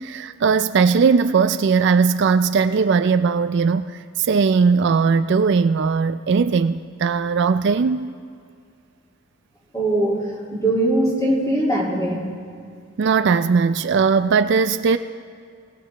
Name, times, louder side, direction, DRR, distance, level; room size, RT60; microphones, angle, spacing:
voice 1, 0.0-8.1 13.0-15.0, right 5 dB, 50° right, 11 dB, 0.3 m, -18 dB
voice 2, 9.7-10.2 10.5-12.2, right 1 dB, 15° left, -5 dB, 2.5 m, -20 dB
20.0 x 17.5 x 3.3 m, 2.3 s
head